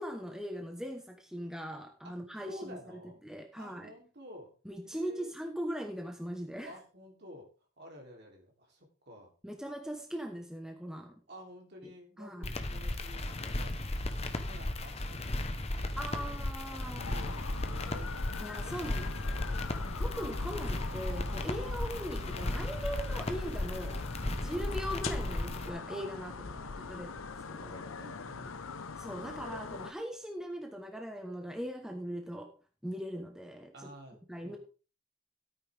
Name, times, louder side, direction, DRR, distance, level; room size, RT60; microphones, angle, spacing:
voice 1, 0.0-3.9 4.6-6.7 9.4-11.1 11.8-11.9 12.2-12.5 16.0-17.1 18.4-19.4 19.7-24.0 24.3-27.2 27.5-27.9 29.0-32.5 32.8-33.9 34.3-34.6, equal, 5° right, 3 dB, 1.0 m, -40 dB
voice 2, 2.5-3.2 3.6-4.5 4.8-5.3 6.6-7.5 7.8-9.3 11.3-13.7 14.1-16.3 17.1-17.3 17.6-18.1 18.6-18.9 19.4-20.1 26.4-27.1 27.9-28.6 33.7-34.6, equal, 50° right, 1 dB, 3.2 m, -52 dB
sound 1, 12.4-25.7, left 1 dB, 30° left, 0.9 m, -36 dB
sound 2, 17.0-29.9, left 4 dB, 80° left, 0.8 m, -42 dB
13.5 x 8.9 x 3.5 m, 0.36 s
head